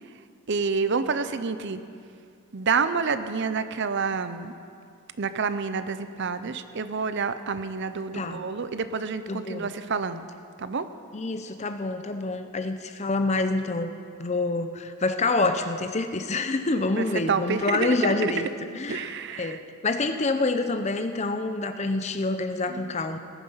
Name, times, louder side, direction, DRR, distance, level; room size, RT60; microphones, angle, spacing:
voice 1, 0.5-1.8 2.5-4.5 5.2-10.3 10.6-10.9 17.0-18.5 18.9-19.6 22.7-23.0, right 5 dB, 50° right, 11 dB, 0.6 m, -28 dB
voice 2, 9.3-9.7 11.1-13.9 14.2-18.5 18.7-23.2, left 3 dB, 30° left, 8 dB, 0.6 m, -27 dB
19.0 x 9.4 x 5.7 m, 2.4 s
head